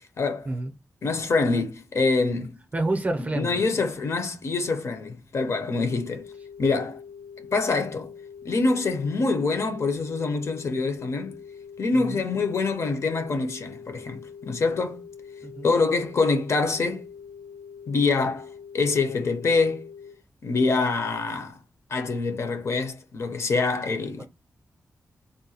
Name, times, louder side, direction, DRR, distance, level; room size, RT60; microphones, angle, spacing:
voice 1, 0.2-0.5 1.0-2.6 3.3-6.3 6.6-7.0 7.5-8.1 8.4-11.4 11.8-15.0 15.6-17.0 17.9-18.5 18.7-19.9 20.4-21.6 21.9-24.3, left 3 dB, 50° left, 0.6 m, -25 dB
voice 2, 2.7-3.6 11.9-12.3 15.4-15.7 24.2-24.3, right 2 dB, 25° right, 0.5 m, -29 dB
sound 1, 5.7-20.1, left 7 dB, 90° left, 1.0 m, -44 dB
3.7 x 2.2 x 2.7 m
wide cardioid pair, 180°, 6 cm